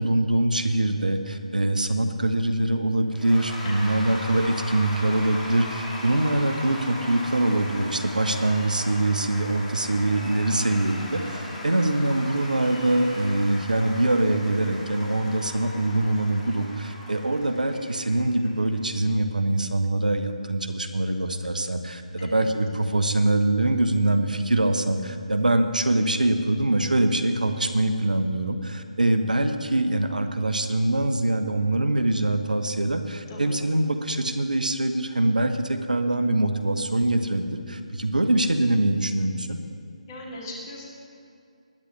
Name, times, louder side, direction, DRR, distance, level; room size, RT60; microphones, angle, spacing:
voice 1, 0.0-39.6, right 1 dB, 85° right, 8 dB, 0.9 m, -24 dB
Cheering / Applause / Crowd, 3.1-18.8, left 1 dB, 10° left, 1.8 m, -39 dB
sound 1, 9.8-15.6, equal, 70° left, 3.7 m, -45 dB
voice 2, 33.3-33.7 40.1-40.8, left 1 dB, 30° left, -3 dB, 2.8 m, -40 dB
20.5 x 9.8 x 3.2 m, 2.4 s
figure-of-eight pair, 150°, 4 cm